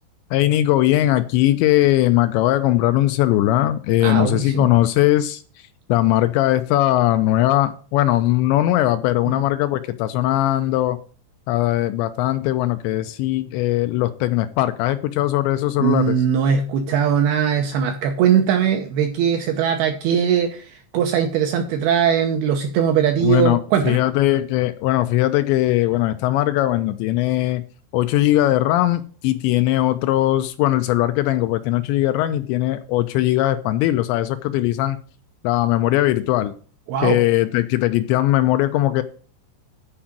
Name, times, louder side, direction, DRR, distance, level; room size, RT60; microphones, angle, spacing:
voice 1, 0.3-5.4 5.9-11.0 11.5-16.2 23.2-27.6 27.9-35.0 35.4-36.5 37.0-39.0, left 15 dB, 80° left, 2.7 m, -19 dB
voice 2, 4.0-4.7 15.8-20.7 20.9-24.0 36.9-37.2, right 8 dB, 75° right, 2.4 m, -20 dB
10.0 x 4.8 x 7.3 m
omnidirectional pair, 5.4 m